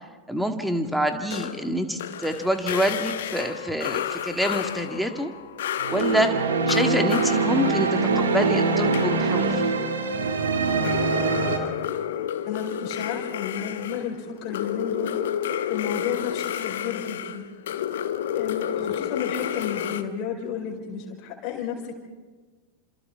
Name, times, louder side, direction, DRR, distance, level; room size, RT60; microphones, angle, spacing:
voice 1, 0.3-5.3 5.9-6.4 6.7-9.7, equal, ahead, 5 dB, 1.9 m, -26 dB
sound 1, 1.3-9.8 10.8-20.0, left 10 dB, 60° left, 1.0 m, -31 dB
sound 2, 5.8-11.6, right 4 dB, 70° right, 2.4 m, -23 dB
voice 2, 12.5-15.2 15.7-17.5 18.3-22.0, left 7 dB, 40° left, -1 dB, 4.7 m, -32 dB
28.5 x 27.0 x 3.7 m, 1.3 s
figure-of-eight pair, 90°, 0 cm